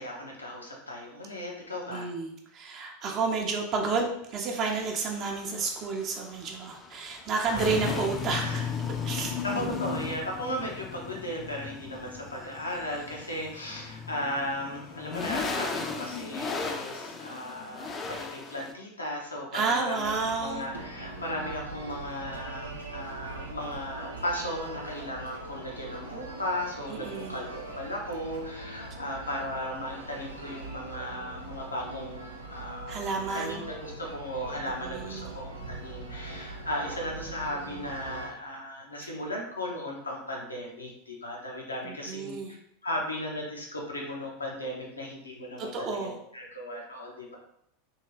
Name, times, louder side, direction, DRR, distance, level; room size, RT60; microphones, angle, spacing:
voice 1, 0.0-2.1 7.5-7.8 8.3-8.7 9.1-33.0 33.3-42.6 42.8-46.0 46.3-47.4, left 1 dB, 80° left, -1 dB, 0.7 m, -36 dB
voice 2, 1.9-8.6 9.0-9.7 19.5-20.7 26.9-27.5 32.9-33.6 34.8-35.4 41.8-42.6 45.6-46.2, right 4 dB, 40° right, 1 dB, 0.4 m, -31 dB
sound 1, 4.5-18.7, left 5 dB, 25° left, 0.3 m, -36 dB
sound 2, 20.0-38.3, right 2 dB, 85° right, 0.6 m, -42 dB
2.8 x 2.7 x 3.0 m, 0.74 s
figure-of-eight pair, 85°, 0 cm